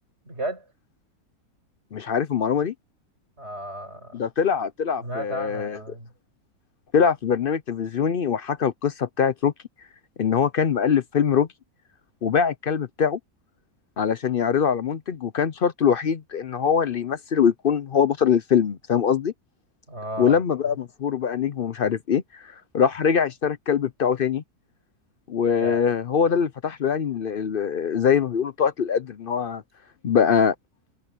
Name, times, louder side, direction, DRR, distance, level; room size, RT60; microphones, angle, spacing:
voice 1, 0.3-0.6 3.4-4.2 5.0-6.1 19.9-20.4 25.6-25.8, right 1 dB, 45° right, 7.7 m, -34 dB
voice 2, 1.9-2.7 4.1-5.8 6.9-9.5 10.2-11.5 12.2-13.2 14.0-19.3 20.2-22.5 22.7-24.4 25.3-29.6 30.0-30.5, left 7 dB, 55° left, 0.6 m, -23 dB
omnidirectional pair, 1.6 m